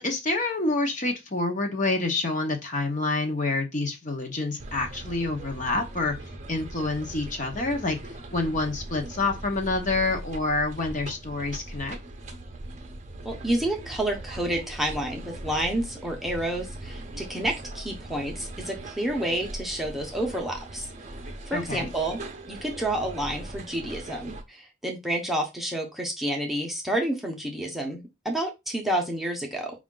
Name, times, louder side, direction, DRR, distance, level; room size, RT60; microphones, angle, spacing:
voice 1, 0.0-6.2 6.5-8.0 8.3-12.0 21.5-21.9, left 2 dB, 40° left, 0.8 m, -27 dB
sound 1, 4.6-24.4, right 2 dB, 35° right, 0.6 m, -40 dB
voice 2, 13.2-20.9 21.5-22.2 22.5-29.7, right 1 dB, ahead, 0.7 m, -29 dB
4.9 x 2.4 x 3.7 m
head